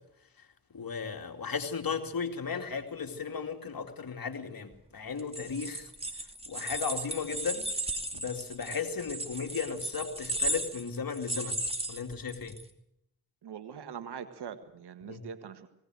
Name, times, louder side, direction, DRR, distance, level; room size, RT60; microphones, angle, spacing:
voice 1, 0.7-5.9 6.5-7.7 8.1-11.6 11.9-12.6 15.0-15.2, left 6 dB, 60° left, 6 dB, 2.6 m, -35 dB
sound 1, 5.2-12.6, right 1 dB, 15° right, 2.7 m, -35 dB
voice 2, 13.4-15.7, right 8 dB, 85° right, 10 dB, 1.8 m, -42 dB
19.5 x 18.5 x 7.8 m, 0.77 s
cardioid pair, 45°, 39 cm